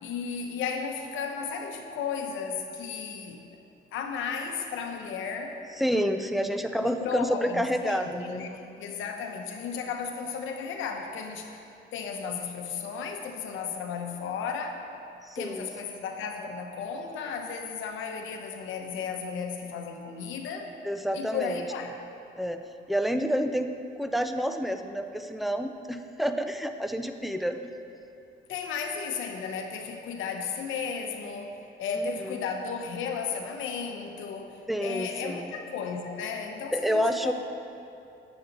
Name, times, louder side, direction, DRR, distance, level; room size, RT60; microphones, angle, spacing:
voice 1, 0.0-3.4 3.9-5.6 6.4-11.6 11.9-14.8 15.3-20.7 21.1-21.9 28.5-37.3, left 6 dB, 85° left, 3 dB, 0.9 m, -34 dB
voice 2, 5.8-8.4 15.2-15.7 20.8-21.6 22.4-22.6 22.9-27.7 32.2-32.4 34.7-35.5 36.7-37.3, equal, ahead, 7 dB, 0.4 m, -29 dB
9.0 x 7.0 x 4.0 m, 2.7 s
cardioid pair, 90°, 20 cm